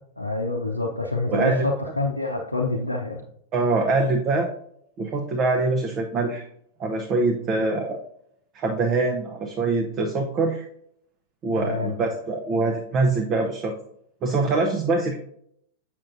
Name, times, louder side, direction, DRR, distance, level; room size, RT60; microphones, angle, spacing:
voice 1, 0.2-3.2 11.5-11.9, left 2 dB, 90° left, -1 dB, 0.6 m, -26 dB
voice 2, 1.3-1.7 3.5-4.5 5.0-6.5 6.8-8.0 8.5-10.7 11.4-13.7 14.2-15.2, right 3 dB, 35° right, 3 dB, 0.7 m, -24 dB
7.5 x 5.9 x 2.5 m, 0.70 s
figure-of-eight pair, 95°, 0 cm